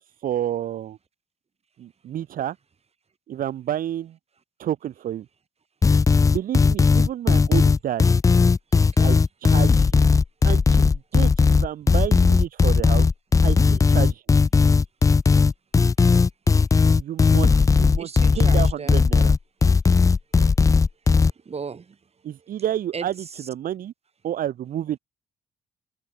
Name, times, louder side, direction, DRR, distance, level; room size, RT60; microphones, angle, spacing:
voice 1, 0.2-1.0 1.8-2.6 3.3-4.2 4.6-5.3 6.3-8.2 9.0-10.1 10.4-13.1 13.4-14.2 17.0-19.3 22.2-23.2 23.5-23.9 24.2-25.0, right 11 dB, 60° right, 0.7 m, -30 dB
sound 1, 5.8-21.3, left 4 dB, 20° left, 0.4 m, -17 dB
voice 2, 8.7-9.2 18.0-19.1 21.5-22.0 22.4-22.5 22.9-23.4, right 5 dB, 40° right, 3.4 m, -36 dB
supercardioid pair, 70°, 16 cm